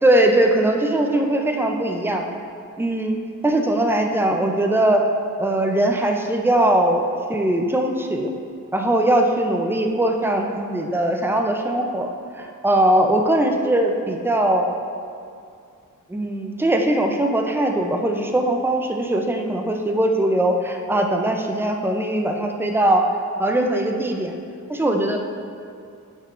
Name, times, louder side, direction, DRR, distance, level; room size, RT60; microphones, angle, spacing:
voice 1, 0.0-2.2 2.8-3.2 3.4-5.0 5.4-7.0 7.3-8.3 8.7-14.7 16.1-23.0 23.4-24.3 24.7-25.2, right 1 dB, 5° right, 3 dB, 0.5 m, -20 dB
8.6 x 5.5 x 2.5 m, 2.4 s
wide cardioid pair, 110°, 33 cm